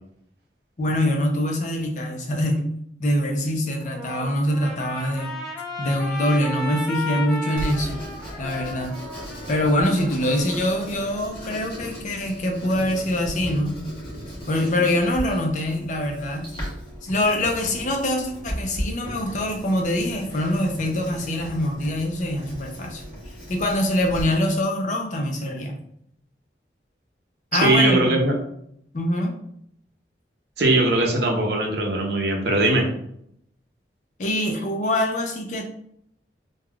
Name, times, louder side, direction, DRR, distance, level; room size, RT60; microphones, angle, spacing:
voice 1, 0.8-2.6 3.0-5.3 5.8-8.0 8.4-8.9 9.5-13.8 14.5-16.5 17.0-23.0 23.5-25.8 27.5-28.2 28.9-29.3 34.2-35.6, left 1 dB, 45° left, 2 dB, 0.5 m, -24 dB
Trumpet, 3.8-11.2, left 1 dB, ahead, 0.7 m, -35 dB
Writing, 7.6-24.2, equal, 25° left, 1.2 m, -37 dB
voice 2, 27.6-28.4 30.6-32.9, right 2 dB, 70° right, 1 dB, 0.6 m, -20 dB
3.3 x 2.3 x 2.3 m, 0.71 s
head